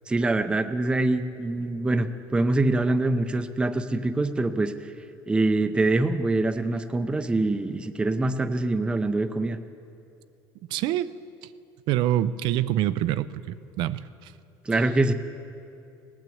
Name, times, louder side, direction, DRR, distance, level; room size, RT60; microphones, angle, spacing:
voice 1, 0.1-4.7 5.3-9.6 14.7-15.1, right 2 dB, 10° right, 9 dB, 0.5 m, -24 dB
voice 2, 10.7-11.1 11.9-14.3, right 12 dB, 65° right, 15 dB, 0.5 m, -26 dB
18.5 x 9.1 x 7.9 m, 2.7 s
cardioid pair, 135°, 8 cm